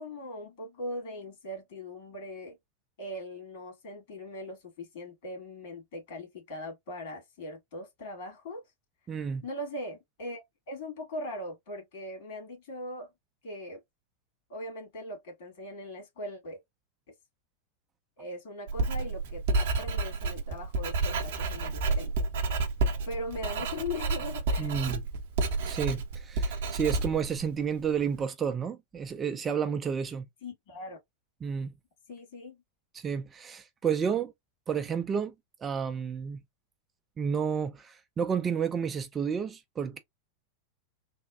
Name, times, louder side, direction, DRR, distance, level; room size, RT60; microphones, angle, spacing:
voice 1, 0.0-2.6 3.0-8.6 9.4-13.1 13.4-13.8 14.5-16.6 18.2-22.3 23.1-24.8 30.4-31.0 32.1-32.6, left 1 dB, 55° left, 2.0 m, -40 dB
voice 2, 9.1-9.4 24.6-25.0 25.7-30.2 31.4-31.7 32.9-34.3 34.7-35.3 35.6-36.4 37.2-40.0, right 7 dB, 20° right, 0.4 m, -31 dB
Writing, 18.7-28.1, right 3 dB, 55° right, 0.7 m, -30 dB
3.5 x 2.3 x 2.4 m
figure-of-eight pair, 90°, 0 cm